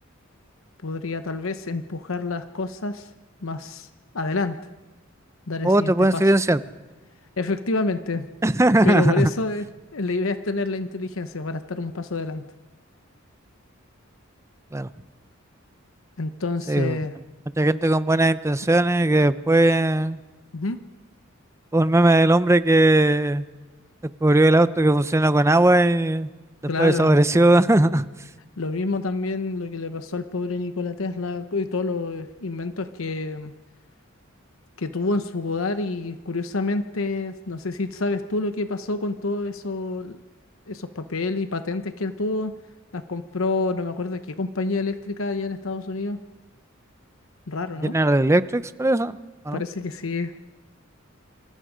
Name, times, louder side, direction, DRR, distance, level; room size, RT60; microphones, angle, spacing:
voice 1, 0.8-3.1 3.4-3.9 4.1-4.6 5.5-6.2 7.4-8.3 8.8-9.7 9.9-12.4 16.2-17.1 20.5-20.8 26.7-27.2 28.6-33.5 34.8-40.2 40.7-42.5 42.9-46.2 47.5-48.0 49.5-50.3, left 3 dB, 80° left, 9 dB, 1.0 m, -28 dB
voice 2, 5.6-6.6 8.4-9.3 14.7-14.9 16.7-17.0 17.6-20.2 21.7-23.4 24.2-26.3 26.8-28.0 47.8-49.1 49.5-49.6, right 1 dB, 15° right, 14 dB, 0.6 m, -18 dB
27.0 x 26.0 x 5.1 m, 1.2 s
head